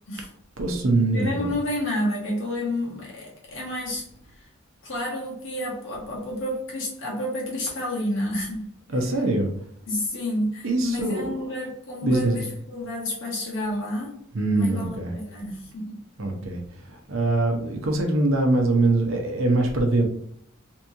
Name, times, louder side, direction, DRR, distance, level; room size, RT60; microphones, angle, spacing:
voice 1, 0.6-1.5 8.9-9.5 10.6-11.3 12.0-12.5 14.3-15.1 16.2-20.0, right 2 dB, 70° right, 3 dB, 0.8 m, -23 dB
voice 2, 1.1-4.0 4.8-8.7 9.9-12.4 12.7-14.1 14.5-16.0, left 1 dB, 60° left, -3 dB, 1.4 m, -30 dB
3.5 x 3.0 x 2.7 m, 0.67 s
head